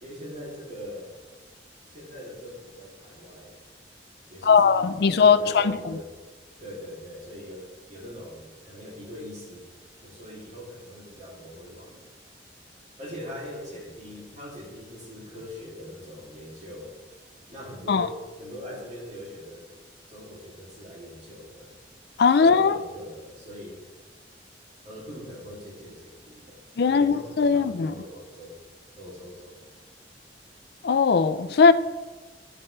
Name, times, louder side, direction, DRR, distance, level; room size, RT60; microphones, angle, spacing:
voice 1, 0.0-1.1 1.9-3.5 4.3-6.1 6.6-12.1 13.0-17.0 17.5-19.7 20.1-21.7 22.4-23.8 24.8-28.6 29.0-29.6, left 1 dB, 40° right, -4 dB, 2.8 m, -42 dB
voice 2, 4.4-5.8 17.9-18.1 22.2-22.8 26.8-27.9 30.8-31.7, left 5 dB, 65° left, 12 dB, 0.4 m, -19 dB
12.0 x 8.8 x 3.3 m, 1.3 s
head